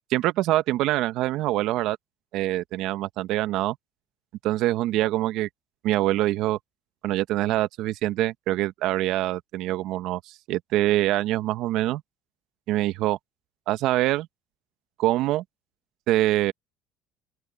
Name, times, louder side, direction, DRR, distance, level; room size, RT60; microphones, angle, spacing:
voice 1, 0.1-2.0 2.3-3.8 4.4-5.5 5.8-6.6 7.0-12.0 12.7-13.2 13.7-14.3 15.0-15.4 16.1-16.5, right 15 dB, 65° right, 1.2 m, -24 dB
open air
supercardioid pair, 85°, 0 cm